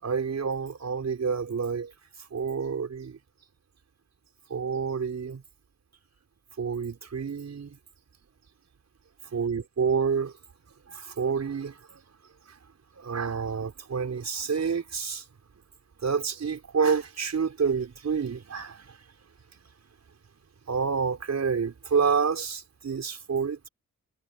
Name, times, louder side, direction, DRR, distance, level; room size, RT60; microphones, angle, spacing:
voice 1, 0.0-1.9 2.3-3.2 4.5-5.4 6.6-7.8 9.3-10.3 10.9-12.0 13.0-15.2 16.0-19.0 20.7-23.7, right 6 dB, 55° right, 5.8 m, -28 dB
cardioid pair, 65°, 33 cm